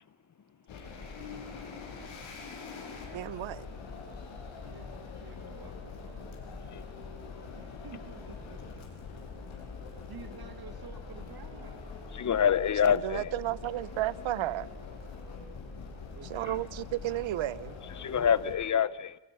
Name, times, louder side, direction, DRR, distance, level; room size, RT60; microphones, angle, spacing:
sound 1, 0.7-18.5, left 4 dB, 85° left, 7.1 m, -44 dB
voice 1, 1.9-2.3 4.6-6.5 7.6-8.9 10.1-11.9 16.1-16.7, right 6 dB, 50° right, 1.6 m, -51 dB
voice 2, 3.1-3.7 12.9-14.7 16.3-17.8, right 14 dB, 80° right, 0.9 m, -33 dB
voice 3, 12.1-13.4 18.0-19.2, left 8 dB, 40° left, 1.0 m, -26 dB
29.0 x 28.0 x 5.8 m
cardioid pair, 120°, 46 cm